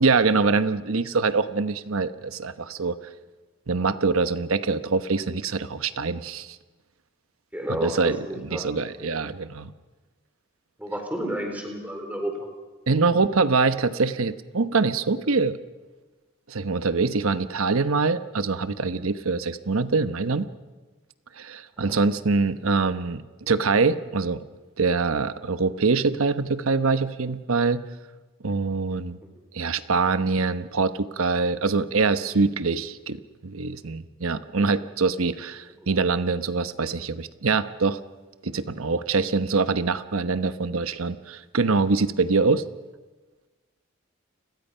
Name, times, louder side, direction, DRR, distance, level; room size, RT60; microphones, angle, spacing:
voice 1, 0.0-3.0 3.7-6.6 7.7-9.7 12.9-15.6 16.5-20.5 21.4-24.4 24.8-27.8 28.4-29.2 29.5-33.2 33.4-38.0 38.4-42.6, right 4 dB, 90° right, 12 dB, 1.0 m, -24 dB
voice 2, 7.5-8.7 9.0-9.1 10.8-12.5 21.8-22.0, right 1 dB, 5° right, 3 dB, 3.8 m, -31 dB
29.5 x 21.5 x 5.7 m, 1.3 s
head